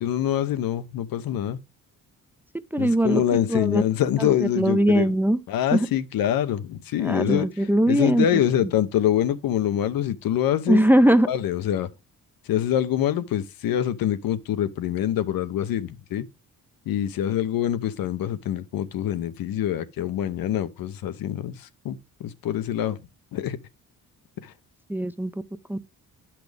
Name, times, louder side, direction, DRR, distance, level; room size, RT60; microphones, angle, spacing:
voice 1, 0.0-1.6 2.8-5.1 5.5-10.8 11.3-11.9 12.5-16.2 16.9-23.0 23.3-23.6 24.4-24.5, left 11 dB, 90° left, 0.9 m, -25 dB
voice 2, 2.7-3.2 3.5-3.8 4.2-5.4 5.7-5.9 7.0-8.3 10.7-11.3 24.9-25.3 25.7-25.8, right 1 dB, 5° right, 0.4 m, -20 dB
10.5 x 6.0 x 3.4 m
cardioid pair, 140°, 34 cm